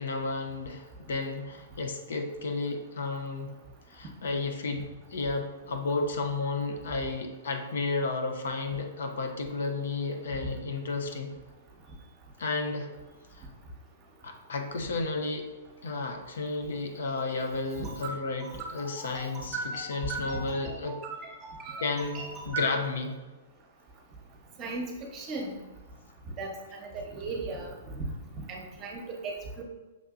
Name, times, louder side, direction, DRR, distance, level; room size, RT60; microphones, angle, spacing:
voice 1, 0.0-3.5 3.9-4.8 5.1-11.3 12.4-12.9 13.4-13.5 14.2-15.5 15.8-18.5 18.7-21.0 21.8-23.2, left 3 dB, 75° left, 4 dB, 0.5 m, -32 dB
voice 2, 18.4-18.9 19.1-22.7 24.6-24.8 25.1-25.5 26.4-28.0 28.3-29.6, right 2 dB, 30° right, 0 dB, 0.8 m, -37 dB
5.9 x 2.6 x 2.4 m, 1.2 s
hypercardioid pair, 130°, 0 cm